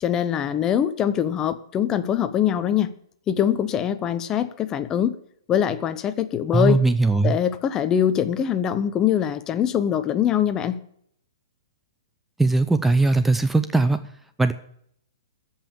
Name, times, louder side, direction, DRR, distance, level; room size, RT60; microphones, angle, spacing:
voice 1, 0.0-2.9 3.3-5.1 5.5-6.8 7.2-10.8, left 9 dB, 25° left, 13 dB, 0.8 m, -23 dB
voice 2, 6.5-7.4 12.4-14.0 14.4-14.5, right 3 dB, 5° right, 9 dB, 0.6 m, -19 dB
14.0 x 5.7 x 8.7 m, 0.67 s
figure-of-eight pair, 115°, 2 cm